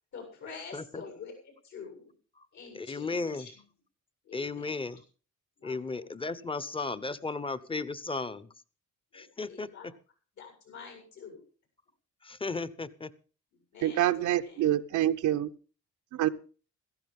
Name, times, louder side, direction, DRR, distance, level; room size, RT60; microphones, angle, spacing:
voice 1, 0.1-2.1 2.5-3.6 4.2-4.9 5.6-6.1 9.1-9.9 10.3-11.4 13.7-14.8, left 5 dB, 70° left, 4 dB, 7.8 m, -47 dB
voice 2, 2.7-3.5 4.3-5.0 5.6-8.5 9.1-9.7 12.2-13.1, left 3 dB, 15° left, 16 dB, 1.0 m, -35 dB
voice 3, 13.8-15.5 16.1-16.3, right 13 dB, 75° right, 9 dB, 0.9 m, -26 dB
16.5 x 14.5 x 3.7 m, 0.38 s
cardioid pair, 90°, 30 cm